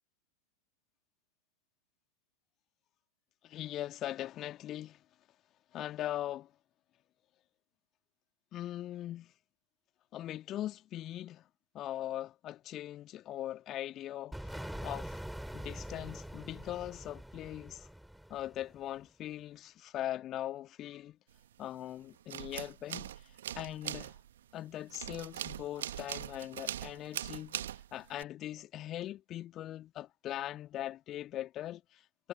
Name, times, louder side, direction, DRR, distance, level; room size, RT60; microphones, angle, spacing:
voice 1, 3.4-5.0 5.7-6.5 8.5-9.3 10.1-11.5 11.7-15.2 15.5-17.9 18.3-21.2 21.6-24.2 24.5-32.3, left 13 dB, 30° left, 2.5 m, -41 dB
sound 1, 14.3-19.0, equal, ahead, 8.0 m, -44 dB
sound 2, 21.4-21.9 22.2-28.2, right 11 dB, 60° right, 2.0 m, -41 dB
figure-of-eight pair, 90°, 0 cm